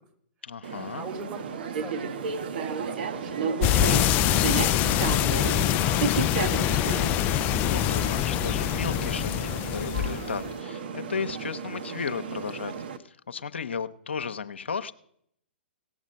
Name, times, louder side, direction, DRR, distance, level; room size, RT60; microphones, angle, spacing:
voice 1, 0.4-1.0 7.4-12.7 13.0-14.9, left 6 dB, 75° left, 10 dB, 0.7 m, -34 dB
sound 1, 0.6-13.0, right 6 dB, 60° right, 1.1 m, -33 dB
voice 2, 1.0-4.0 4.3-6.8, right 3 dB, 30° right, 3 dB, 3.5 m, -43 dB
sound 2, 3.6-10.5, left 13 dB, 30° left, 0.4 m, -24 dB
18.0 x 7.2 x 5.3 m, 0.69 s
figure-of-eight pair, 120°, 6 cm